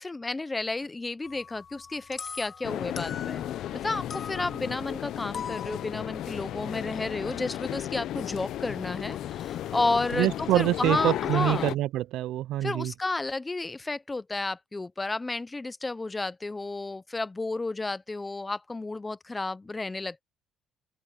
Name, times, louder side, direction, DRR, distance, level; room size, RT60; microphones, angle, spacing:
voice 1, 0.0-3.4 3.7-11.8 12.6-20.2, left 3 dB, 15° left, 0.5 m, -32 dB
sound 1, 1.2-3.8 4.1-7.8, left 7 dB, 30° left, 0.9 m, -43 dB
sound 2, 2.6-11.8, left 12 dB, 60° left, 0.6 m, -34 dB
voice 2, 10.1-12.9, right 15 dB, 80° right, 0.3 m, -26 dB
cardioid pair, 170°, 0 cm